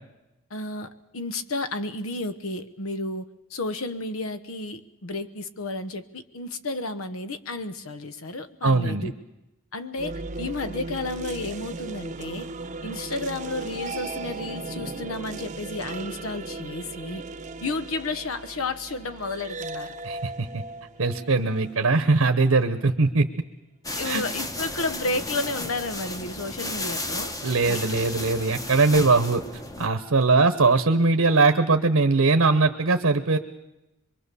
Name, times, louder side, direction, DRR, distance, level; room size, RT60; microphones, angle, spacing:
voice 1, 0.5-9.1 9.7-12.5 12.8-17.2 17.6-19.9 23.9-27.3 27.6-27.8, left 2 dB, 75° left, 12 dB, 1.1 m, -32 dB
voice 2, 8.6-9.1 20.0-20.6 21.0-23.3 24.0-24.2 27.4-29.4 29.8-33.4, right 3 dB, 80° right, 8 dB, 1.0 m, -21 dB
sound 1, 9.9-22.1, right 3 dB, 35° right, 0.9 m, -37 dB
sound 2, 23.8-29.9, left 2 dB, 15° left, 1.1 m, -33 dB
24.0 x 23.0 x 6.9 m, 0.96 s
head